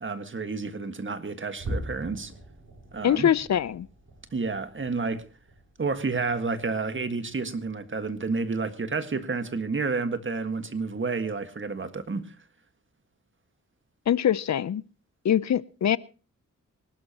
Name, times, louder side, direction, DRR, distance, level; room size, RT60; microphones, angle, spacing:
voice 1, 0.0-2.3 2.9-3.3 4.3-5.2 5.8-12.3, right 4 dB, 40° right, 1.7 m, -30 dB
sound 1, 1.6-8.2 8.6-8.9 9.3-9.4 10.0-10.1, right 1 dB, 55° right, 7.7 m, -42 dB
voice 2, 3.0-3.9 14.1-14.8 15.2-16.0, left 10 dB, 65° left, 0.6 m, -23 dB
24.5 x 12.0 x 2.9 m
cardioid pair, 80°, 30 cm